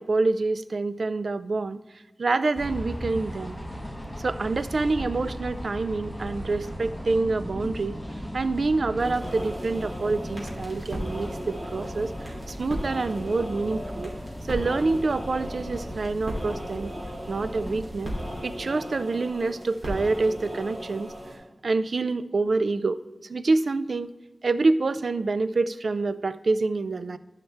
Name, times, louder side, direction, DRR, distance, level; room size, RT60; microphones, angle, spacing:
voice 1, 0.0-1.8 2.2-3.6 4.2-8.0 8.3-14.1 14.5-16.9 17.3-18.1 18.4-21.1 21.6-23.0 23.3-24.1 24.4-27.2, right 3 dB, 85° right, 13 dB, 0.3 m, -26 dB
sound 1, 2.6-18.5, equal, 5° left, 1.1 m, -37 dB
sound 2, 9.0-21.4, equal, 40° right, 2.7 m, -37 dB
11.0 x 5.7 x 3.3 m, 1.1 s
wide cardioid pair, 60°, 0 cm